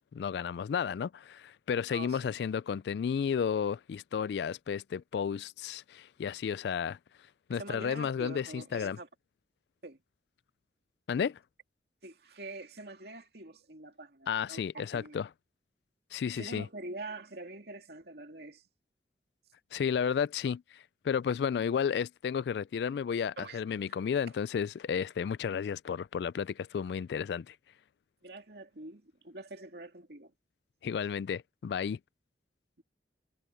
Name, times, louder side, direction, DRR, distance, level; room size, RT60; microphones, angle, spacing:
voice 1, 0.1-7.0 7.5-9.0 11.1-11.4 14.3-15.3 16.1-16.7 19.7-27.5 30.8-32.0, left 7 dB, 65° left, 0.3 m, -32 dB
voice 2, 7.5-9.1 9.8-10.0 12.0-15.2 16.3-18.6 23.4-23.6 23.9-24.0 28.2-30.3, right 2 dB, 65° right, 2.5 m, -45 dB
head